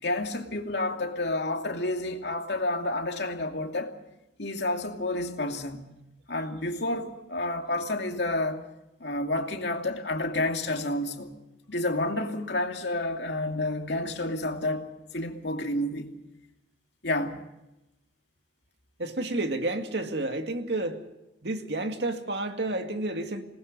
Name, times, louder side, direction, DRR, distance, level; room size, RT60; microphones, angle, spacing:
voice 1, 0.0-3.9 4.4-6.0 6.3-8.6 9.0-11.4 11.7-14.9 15.1-16.1 17.0-17.4, left 2 dB, 70° left, 2.6 m, -30 dB
voice 2, 19.0-21.0 21.4-23.4, right 2 dB, 70° right, 2.2 m, -30 dB
27.5 x 19.5 x 5.4 m
head